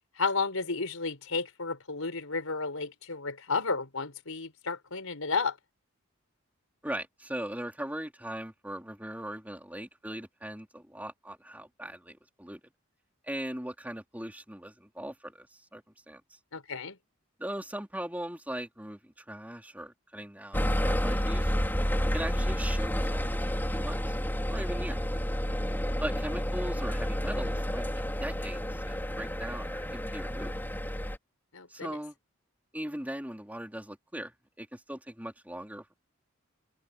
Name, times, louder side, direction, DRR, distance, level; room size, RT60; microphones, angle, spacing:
voice 1, 0.2-5.6 16.5-17.0 31.5-32.0, left 4 dB, 85° left, 4.5 m, -32 dB
voice 2, 6.8-12.6 13.3-16.4 17.4-21.5 22.1-24.2 24.5-25.0 26.0-30.5 31.7-32.2 32.7-35.9, right 1 dB, 5° right, 3.9 m, -39 dB
sound 1, 20.5-31.2, equal, 10° left, 4.6 m, -30 dB
head